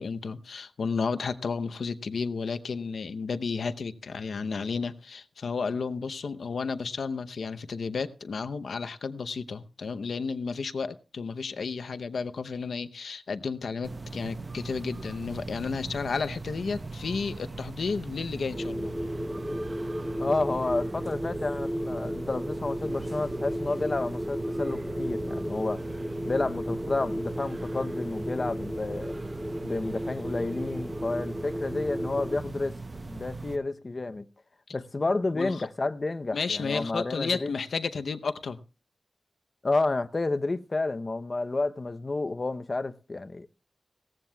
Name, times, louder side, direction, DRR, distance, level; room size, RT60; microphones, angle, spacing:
voice 1, 0.0-18.9 35.3-35.5 36.3-38.6, left 5 dB, 90° left, 0.7 m, -32 dB
sound 1, 13.8-33.6, right 3 dB, 40° right, 0.7 m, -40 dB
sound 2, 18.5-32.4, equal, ahead, 0.7 m, -34 dB
voice 2, 20.2-29.2 29.6-32.8 33.1-34.3 34.7-37.5 39.6-43.5, left 3 dB, 40° left, 0.7 m, -30 dB
18.0 x 15.0 x 2.3 m
wide cardioid pair, 85°, 0 cm